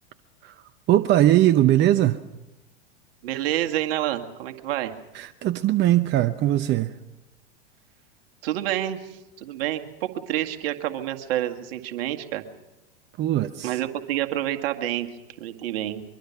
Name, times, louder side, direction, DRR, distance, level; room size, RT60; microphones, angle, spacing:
voice 1, 0.9-2.2 5.1-6.9 13.2-13.8, right 13 dB, 35° right, 10 dB, 0.9 m, -20 dB
voice 2, 3.2-4.9 8.4-12.4 13.6-15.1 15.4-16.0, right 13 dB, 65° right, 5 dB, 2.1 m, -28 dB
23.5 x 23.0 x 5.9 m, 0.97 s
hypercardioid pair, 100°, 32 cm